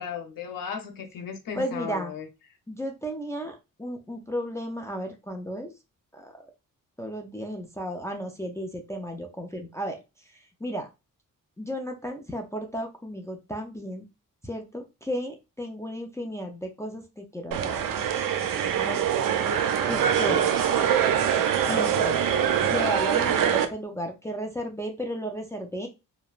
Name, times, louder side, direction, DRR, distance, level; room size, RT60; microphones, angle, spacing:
voice 1, 0.0-2.3, left 6 dB, 85° left, 4 dB, 0.8 m, -35 dB
voice 2, 1.5-2.1 2.7-5.7 6.1-6.4 7.0-10.0 10.6-10.9 11.6-14.1 14.4-17.7 18.8-19.0 19.9-20.5 21.7-22.2 22.6-25.9, equal, 10° left, 3 dB, 0.4 m, -34 dB
sound 1, 17.5-23.7, right 8 dB, 75° right, 0.5 m, -24 dB
2.9 x 2.1 x 2.3 m, 0.26 s
cardioid pair, 95°, 33 cm